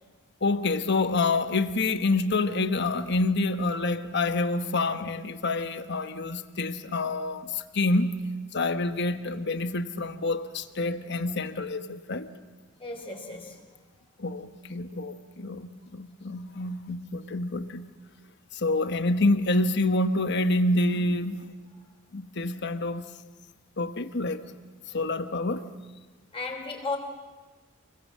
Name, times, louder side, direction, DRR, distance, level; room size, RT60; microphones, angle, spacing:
voice 1, 0.4-8.2 8.5-12.3 14.2-17.9 18.5-21.5 22.1-23.1 23.8-24.5 24.9-25.7, left 2 dB, 55° left, 1.1 m, -27 dB
voice 2, 12.8-13.6 26.3-27.0, left 3 dB, 25° left, 3.6 m, -34 dB
28.0 x 22.0 x 7.5 m
head